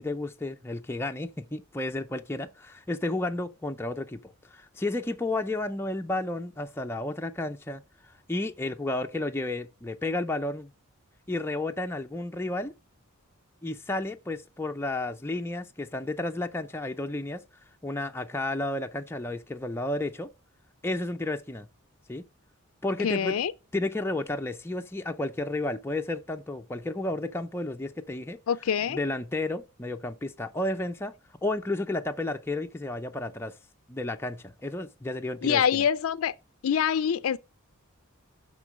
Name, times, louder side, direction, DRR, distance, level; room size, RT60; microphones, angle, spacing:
voice 1, 0.0-7.8 8.3-10.7 11.3-12.7 13.6-17.4 17.8-20.3 20.8-21.7 22.1-22.2 22.8-23.4 23.7-28.4 28.9-31.1 31.4-33.6 33.9-35.8, left 2 dB, 10° left, 0.5 m, -32 dB
voice 2, 23.0-23.5 28.5-29.0 35.4-36.3 36.6-37.4, left 8 dB, 70° left, 0.4 m, -25 dB
11.5 x 3.8 x 6.1 m
head